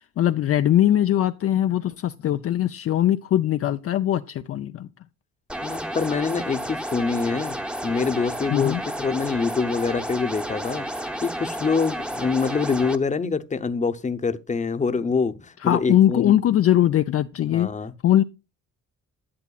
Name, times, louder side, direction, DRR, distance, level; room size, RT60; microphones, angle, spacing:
voice 1, 0.2-4.9 8.5-8.8 15.6-17.7 18.0-18.2, left 12 dB, 50° left, 0.5 m, -21 dB
sound 1, 5.5-13.0, equal, 5° right, 0.9 m, -31 dB
voice 2, 5.6-7.6 7.8-16.4 17.5-17.9, left 5 dB, 25° left, 0.8 m, -25 dB
11.5 x 8.2 x 2.4 m
cardioid pair, 90°, 30 cm